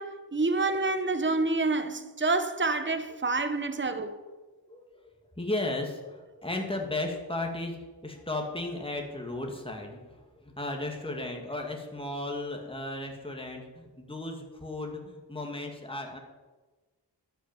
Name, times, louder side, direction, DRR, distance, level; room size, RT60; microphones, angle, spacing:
voice 1, 0.0-4.2, right 3 dB, 25° right, 1.1 m, -28 dB
voice 2, 4.7-7.8 8.0-16.2, left 2 dB, 10° left, 2.3 m, -35 dB
13.0 x 9.2 x 7.3 m
wide cardioid pair, 75°, 42 cm